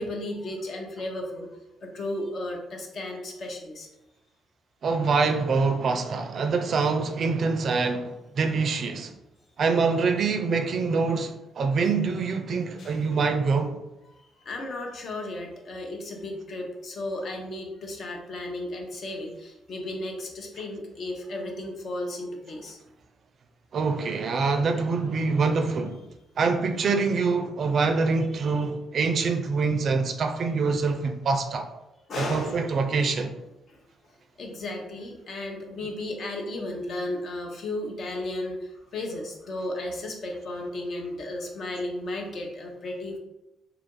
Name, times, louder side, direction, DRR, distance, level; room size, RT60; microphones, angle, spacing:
voice 1, 0.0-1.5 1.8-3.9 12.8-13.2 14.1-22.8 32.1-32.7 33.7-33.8 34.0-34.1 34.4-43.2, left 1 dB, 60° left, 0.7 m, -34 dB
voice 2, 4.8-9.1 9.6-13.7 23.7-26.0 26.4-31.7 32.2-33.3, right 4 dB, 55° right, 0.4 m, -25 dB
2.8 x 2.5 x 3.7 m
cardioid pair, 90°, 0 cm